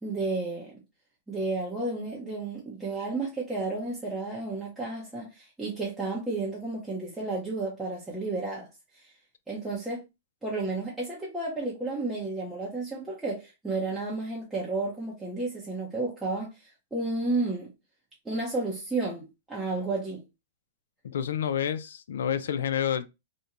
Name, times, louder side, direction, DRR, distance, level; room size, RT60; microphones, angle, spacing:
voice 1, 0.0-0.8 1.3-8.7 8.9-9.1 9.5-10.0 10.4-17.7 18.2-20.2, right 3 dB, 5° right, 0.6 m, -32 dB
voice 2, 21.0-23.1, left 9 dB, 85° left, 0.3 m, -29 dB
2.5 x 2.1 x 2.8 m
supercardioid pair, 155°, 0 cm